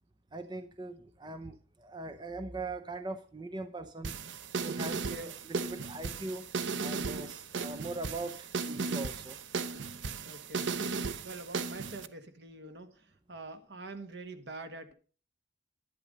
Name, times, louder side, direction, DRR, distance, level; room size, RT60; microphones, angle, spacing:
voice 1, 0.3-4.2 4.6-6.5 6.8-9.4, right 2 dB, 25° right, 8 dB, 0.7 m, -41 dB
sound 1, 4.0-12.1, right 4 dB, 85° right, 0.7 m, -36 dB
voice 2, 4.9-5.3 10.2-10.8 11.2-14.9, right 2 dB, 70° right, 8 dB, 1.6 m, -45 dB
11.0 x 9.9 x 5.3 m, 0.40 s
head